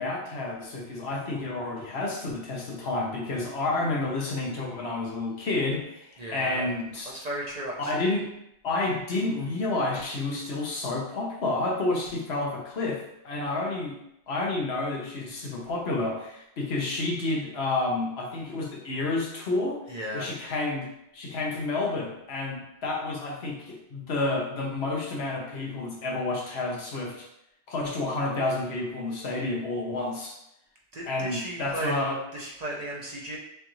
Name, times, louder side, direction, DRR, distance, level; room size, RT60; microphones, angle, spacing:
voice 1, 0.0-7.1 7.8-8.3 8.6-14.0 14.3-19.8 20.1-20.9 21.1-27.3 27.7-30.4 31.0-32.2, left 2 dB, 65° left, -1 dB, 1.2 m, -30 dB
voice 2, 6.2-6.7 7.0-8.1 19.9-20.4 30.9-32.0 32.3-33.4, right 1 dB, 40° right, -3 dB, 0.8 m, -35 dB
6.7 x 2.5 x 3.1 m, 0.79 s
omnidirectional pair, 1.2 m